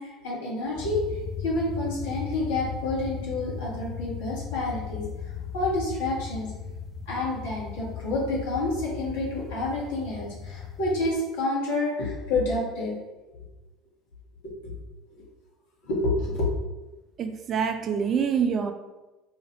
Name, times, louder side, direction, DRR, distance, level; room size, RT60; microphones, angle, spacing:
voice 1, 0.0-6.5 7.1-12.9 14.4-14.5 15.1-15.2 15.8-16.5, left 2 dB, 75° left, -4 dB, 1.3 m, -29 dB
sound 1, 0.8-11.1, left 7 dB, 40° left, 0.5 m, -37 dB
voice 2, 17.2-18.7, right 7 dB, 45° right, 7 dB, 0.4 m, -26 dB
2.8 x 2.5 x 4.2 m, 1.1 s
hypercardioid pair, 70°, 0 cm